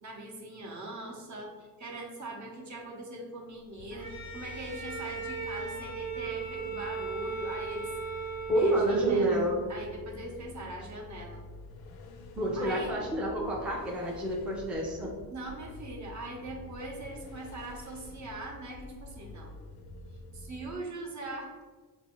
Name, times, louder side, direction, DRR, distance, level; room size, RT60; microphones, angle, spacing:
voice 1, 0.0-7.9 8.6-9.4 9.7-11.4 12.5-12.9 15.3-19.5 20.3-21.6, right 1 dB, 50° right, -1 dB, 0.8 m, -41 dB
sound 1, 3.8-20.7, left 1 dB, 80° left, 0.5 m, -48 dB
Bowed string instrument, 3.9-9.2, right 5 dB, 25° right, 1.0 m, -38 dB
voice 2, 8.5-9.6 12.4-15.1, right 1 dB, 5° right, -2 dB, 0.4 m, -28 dB
4.1 x 2.6 x 3.0 m, 1.4 s
cardioid pair, 130°, 37 cm